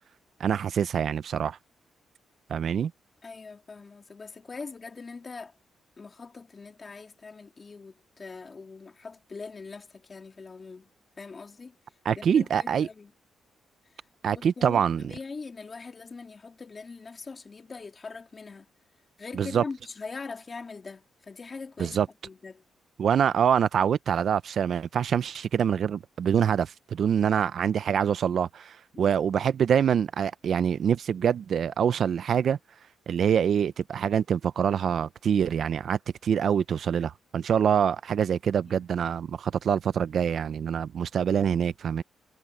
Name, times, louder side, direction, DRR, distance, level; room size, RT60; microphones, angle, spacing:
voice 1, 0.4-1.6 2.5-2.9 12.1-12.9 14.2-15.0 19.4-19.6 21.8-22.1 23.0-32.6 33.1-42.0, right 8 dB, 55° right, 0.5 m, -25 dB
voice 2, 3.2-5.5 6.0-10.9 11.2-11.8 12.1-13.1 13.9-14.0 14.3-18.7 19.2-22.0 22.2-22.6 27.3-27.4 28.9-29.1 38.7-38.9, left 4 dB, 30° left, 2.5 m, -42 dB
cardioid pair, 135°, 0 cm